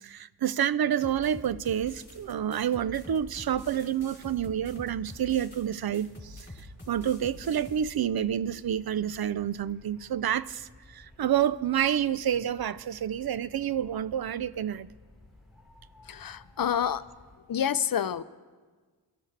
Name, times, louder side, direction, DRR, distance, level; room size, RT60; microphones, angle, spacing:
voice 1, 0.0-6.5 6.9-14.9, right 10 dB, 60° right, 0.5 m, -29 dB
sound 1, 1.0-7.8, left 1 dB, 25° left, 3.4 m, -46 dB
sound 2, 1.9-17.4, left 1 dB, ahead, 4.5 m, -56 dB
voice 2, 16.0-17.1 17.5-18.2, left 8 dB, 50° left, 0.5 m, -28 dB
21.5 x 13.0 x 3.3 m
cardioid pair, 55°, 43 cm